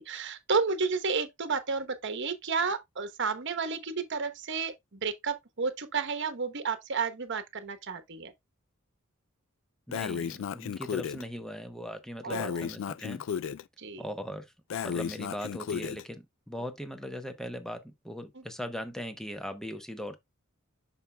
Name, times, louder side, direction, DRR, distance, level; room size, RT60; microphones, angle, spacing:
voice 1, 0.1-8.3 12.2-12.7 13.8-14.0 18.3-18.4, right 5 dB, 60° right, 1.1 m, -31 dB
Breathing, 9.9-11.2 12.3-13.6 14.7-16.0, left 7 dB, 65° left, 0.3 m, -34 dB
voice 2, 9.9-13.2 14.0-14.5 14.8-20.2, equal, ahead, 0.9 m, -39 dB
7.3 x 6.0 x 2.3 m
head